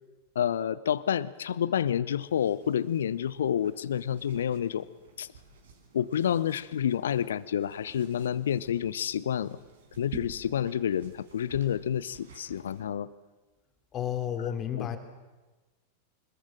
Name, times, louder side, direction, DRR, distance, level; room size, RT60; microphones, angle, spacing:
voice 1, 0.3-4.8 5.2-5.3 5.9-9.6 10.0-13.1 14.8-14.9, left 9 dB, 65° left, 19 dB, 0.7 m, -29 dB
sound 1, 2.2-12.8, right 5 dB, 60° right, 4.5 m, -51 dB
voice 2, 13.9-15.0, left 9 dB, 30° left, 6 dB, 3.0 m, -31 dB
25.0 x 21.0 x 7.5 m, 1.2 s
figure-of-eight pair, 90°, 0 cm